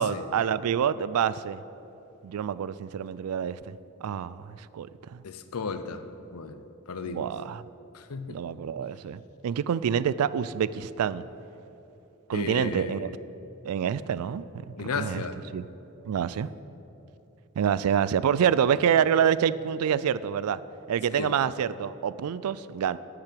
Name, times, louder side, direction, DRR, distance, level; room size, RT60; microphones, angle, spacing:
voice 1, 0.0-1.6 2.2-5.2 7.1-7.6 8.3-11.3 12.3-13.1 13.6-15.2 15.5-15.7 16.0-16.5 17.6-20.6 20.9-23.0, right 8 dB, 80° right, 17 dB, 0.3 m, -27 dB
voice 2, 5.2-6.0 6.3-6.6 6.9-7.3 7.9-8.4 12.3-13.0 14.8-15.4 21.1-21.3, left 4 dB, 80° left, 10 dB, 0.6 m, -34 dB
10.5 x 5.9 x 7.6 m, 2.9 s
head